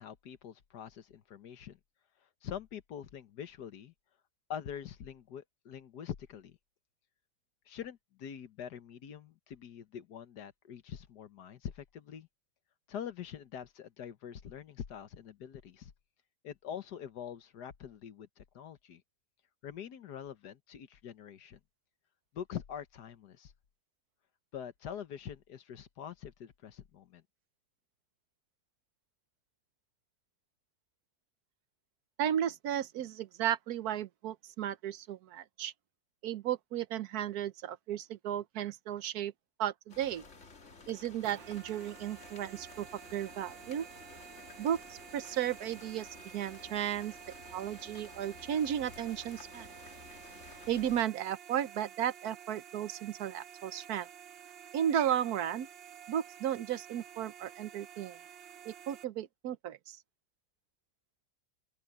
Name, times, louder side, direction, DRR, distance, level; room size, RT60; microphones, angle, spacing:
voice 1, 0.0-1.8 2.4-3.9 4.5-6.6 7.7-12.3 12.9-15.9 16.4-19.0 19.6-21.6 22.3-23.5 24.5-27.2, left 9 dB, 65° left, 1.6 m, -44 dB
voice 2, 32.2-35.7 36.2-39.3 39.6-40.2 40.9-43.9 44.6-46.1 46.3-47.1 47.5-49.7 50.7-54.1 54.7-55.7 56.1-58.2 58.6-60.0, right 10 dB, 65° right, 1.2 m, -34 dB
sound 1, 39.9-51.0, left 3 dB, 40° left, 2.3 m, -53 dB
sound 2, 41.2-59.0, right 9 dB, 85° right, 1.7 m, -52 dB
open air
omnidirectional pair, 1.9 m